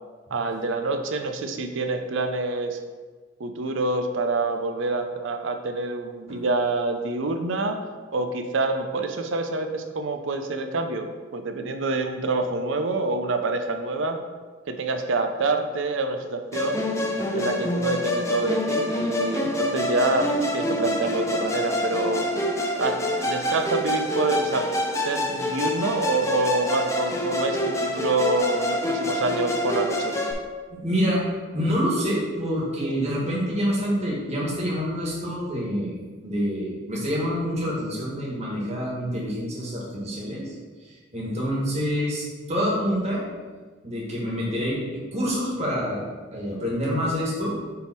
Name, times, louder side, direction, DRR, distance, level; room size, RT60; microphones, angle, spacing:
voice 1, 0.3-2.8 3.4-14.2 14.7-16.8 17.3-22.3 22.8-24.7 25.0-30.1 32.8-32.9, right 2 dB, 70° right, 6 dB, 0.6 m, -27 dB
Musical instrument, 16.5-30.3, left 1 dB, 15° left, 0.6 m, -26 dB
voice 2, 30.7-31.2 31.5-40.5 40.9-43.2 43.8-47.5, equal, 35° right, -5 dB, 1.7 m, -27 dB
6.8 x 3.5 x 4.6 m, 1.4 s
head